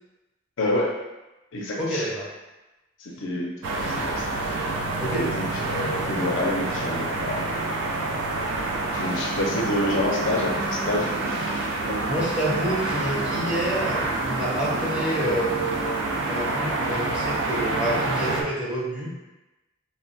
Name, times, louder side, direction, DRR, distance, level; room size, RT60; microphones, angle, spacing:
voice 1, 0.6-1.0 1.5-2.1 3.0-4.3 5.1-7.4 8.9-11.4 11.9-12.2, left 1 dB, 75° left, -1 dB, 0.5 m, -28 dB
voice 2, 1.8-2.3 5.0-5.3 12.1-19.1, right 1 dB, 5° right, -7 dB, 0.6 m, -28 dB
sound 1, 3.6-18.4, right 2 dB, 75° right, 0.4 m, -27 dB
Guitar, 10.0-13.0, left 3 dB, 60° right, 0.9 m, -40 dB
2.1 x 2.1 x 3.8 m, 1.0 s
head